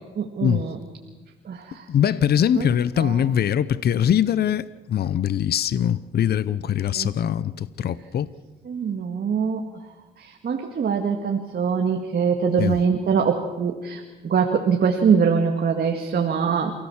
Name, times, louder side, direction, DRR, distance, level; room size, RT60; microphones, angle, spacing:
voice 1, 0.2-0.8 1.5-1.8 2.6-2.7 3.0-3.1 6.9-7.1 8.7-9.7 10.2-16.7, right 6 dB, 50° right, 2.0 m, -23 dB
voice 2, 1.9-8.3 12.6-12.7, left 9 dB, 55° left, 0.7 m, -22 dB
28.5 x 17.0 x 7.2 m
cardioid pair, 90°, 20 cm